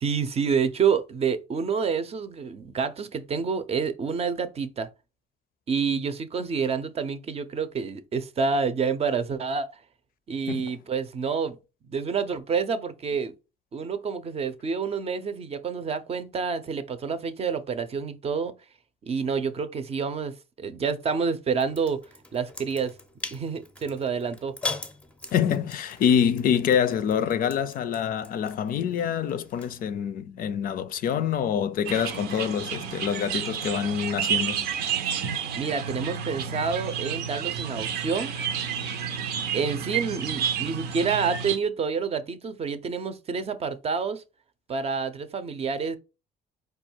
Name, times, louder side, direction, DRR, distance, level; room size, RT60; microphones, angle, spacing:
voice 1, 0.0-4.9 5.7-9.7 10.3-11.6 11.9-13.3 13.7-18.5 19.1-22.0 22.3-23.0 23.3-24.6 35.5-38.3 39.4-44.2 44.7-46.0, right 5 dB, 35° right, 0.6 m, -28 dB
sound 1, 21.6-29.9, left 3 dB, 5° left, 0.6 m, -41 dB
voice 2, 25.3-34.7, left 8 dB, 55° left, 0.5 m, -26 dB
sound 2, 31.8-41.6, right 8 dB, 75° right, 0.7 m, -30 dB
4.8 x 2.3 x 4.4 m
cardioid pair, 110°, 17 cm